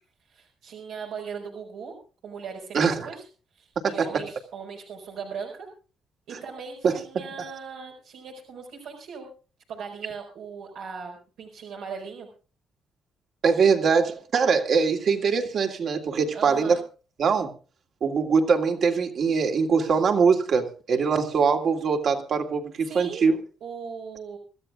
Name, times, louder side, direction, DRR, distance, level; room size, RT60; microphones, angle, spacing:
voice 1, 0.3-2.0 2.2-3.2 3.5-5.7 6.3-9.3 9.7-12.3 16.3-16.8 22.9-24.4, right 5 dB, 85° right, -2 dB, 5.1 m, -38 dB
voice 2, 2.7-3.1 3.8-4.1 6.8-7.0 13.4-16.8 17.2-17.5 18.0-23.3, right 5 dB, 60° right, 4 dB, 2.8 m, -22 dB
26.0 x 13.5 x 2.5 m, 0.36 s
cardioid pair, 90°, 0 cm